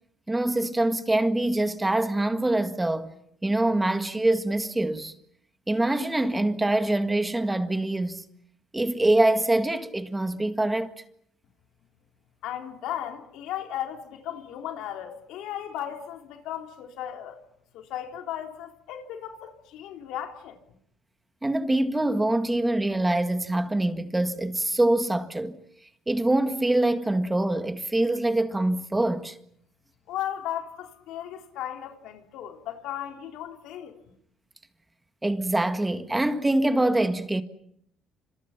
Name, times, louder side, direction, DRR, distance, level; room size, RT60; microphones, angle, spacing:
voice 1, 0.3-3.1 3.4-5.1 5.7-8.2 8.7-10.9 21.4-25.6 26.1-29.4 35.2-37.4, right 1 dB, 10° right, 1.8 m, -24 dB
voice 2, 12.4-17.4 17.7-20.6 30.1-33.9, left 11 dB, 80° left, 3.6 m, -36 dB
30.0 x 27.0 x 5.9 m
cardioid pair, 100°, 0 cm